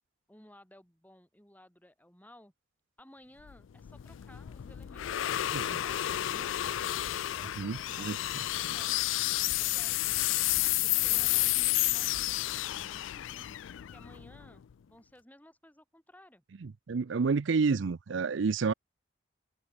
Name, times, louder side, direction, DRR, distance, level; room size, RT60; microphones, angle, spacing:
voice 1, 0.3-2.5 3.0-5.3 5.7-9.0 9.5-10.6 10.8-16.4, left 1 dB, 10° left, 7.9 m, -57 dB
sound 1, 3.5-14.7, left 15 dB, 70° left, 0.4 m, -31 dB
voice 2, 7.6-8.2 8.6-8.7 16.6-18.7, right 4 dB, 65° right, 0.5 m, -30 dB
head